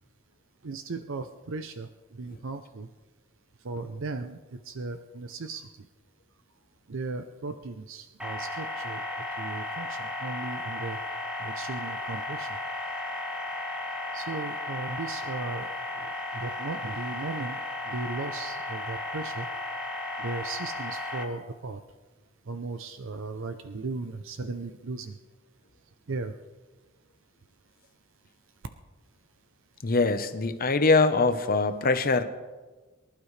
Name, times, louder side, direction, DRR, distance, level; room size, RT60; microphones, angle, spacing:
voice 1, 0.6-1.9 2.2-2.9 3.6-5.7 6.9-9.0 9.4-11.0 11.4-12.5 14.1-15.7 16.0-17.6 17.9-19.5 20.2-21.8 22.5-25.2 26.1-26.3, right 3 dB, 65° right, 9 dB, 0.6 m, -36 dB
sound 1, 8.2-21.2, left 2 dB, 5° right, 1.7 m, -35 dB
voice 2, 29.8-32.2, left 3 dB, 45° left, 9 dB, 0.9 m, -23 dB
24.0 x 12.0 x 3.3 m, 1.3 s
head